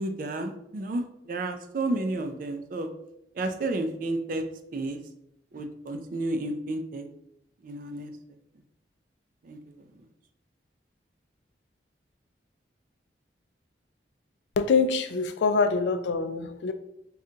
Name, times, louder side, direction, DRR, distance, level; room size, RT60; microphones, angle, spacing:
voice 1, 0.0-2.9 3.3-4.4 4.7-5.0 5.5-7.1 7.6-8.1 9.4-9.6, right 2 dB, 50° right, 7 dB, 0.4 m, -31 dB
voice 2, 14.6-16.7, left 4 dB, 75° left, 9 dB, 0.3 m, -25 dB
5.0 x 2.3 x 2.7 m, 0.79 s
head